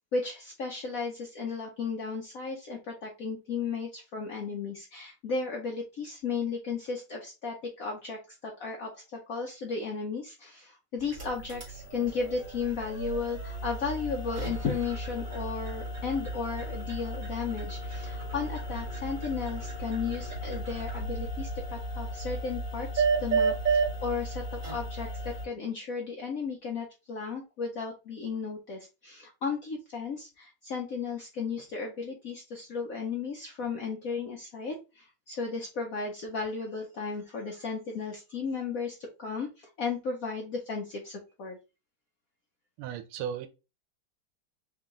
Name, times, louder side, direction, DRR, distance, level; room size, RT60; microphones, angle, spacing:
voice 1, 0.1-41.6, left 5 dB, 65° left, 0.8 m, -35 dB
sound 1, 11.0-25.5, right 3 dB, 40° right, 1.9 m, -33 dB
voice 2, 42.8-43.5, right 8 dB, 90° right, 1.5 m, -35 dB
3.6 x 2.9 x 3.7 m
omnidirectional pair, 2.3 m